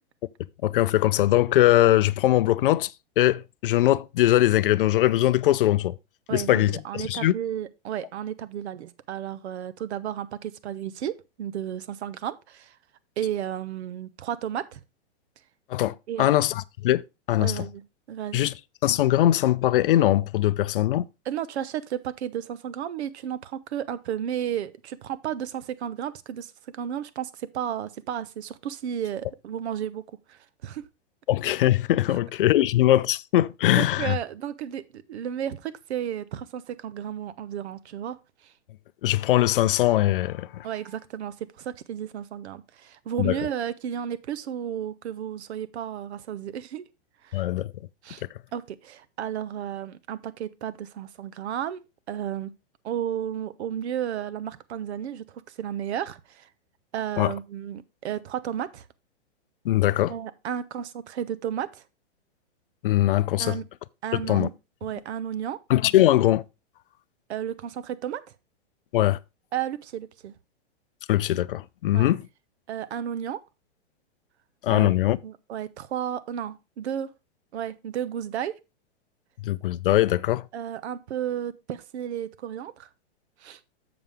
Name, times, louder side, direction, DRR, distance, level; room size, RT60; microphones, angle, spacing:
voice 1, 0.6-6.0 6.3-7.3 15.7-17.0 17.3-17.6 18.3-18.5 18.8-21.0 31.3-34.1 39.0-40.7 43.2-43.4 47.3-47.7 57.2-57.3 59.7-60.1 62.8-63.6 64.1-64.5 65.7-66.4 68.9-69.2 71.1-72.2 74.6-75.2 79.4-80.5, left 14 dB, 50° left, 0.4 m, -21 dB
voice 2, 6.3-12.8 13.2-14.8 16.1-16.3 17.4-17.8 18.1-18.5 21.2-30.8 32.1-32.2 33.7-38.5 40.6-46.9 47.2-47.5 48.0-48.2 48.5-52.5 52.8-56.5 56.9-58.9 60.1-61.8 63.4-63.7 64.0-64.5 64.8-65.6 67.3-68.2 69.5-70.3 71.9-72.1 72.7-73.4 74.7-77.1 77.5-78.6 80.5-82.9 83.4-83.6, right 10 dB, 65° right, 0.8 m, -33 dB
7.3 x 6.9 x 3.4 m
hypercardioid pair, 160°, 35 cm